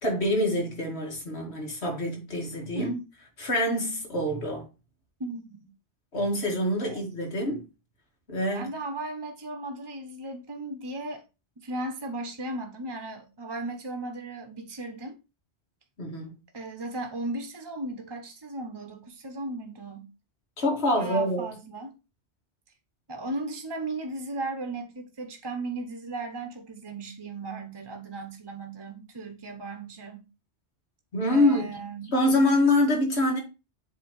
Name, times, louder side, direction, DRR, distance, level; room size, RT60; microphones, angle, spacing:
voice 1, 0.0-2.9 3.4-4.6 6.1-7.6 8.3-8.7 16.0-16.3 20.6-21.5 31.1-31.7 32.1-33.4, left 1 dB, 80° left, 2.3 m, -25 dB
voice 2, 2.7-3.0 5.2-5.7 6.8-7.0 8.5-11.2 11.6-15.2 16.5-20.1 20.9-22.0 23.1-30.2 31.3-32.1, right 2 dB, 25° right, 0.9 m, -36 dB
7.5 x 3.0 x 5.4 m
omnidirectional pair, 1.1 m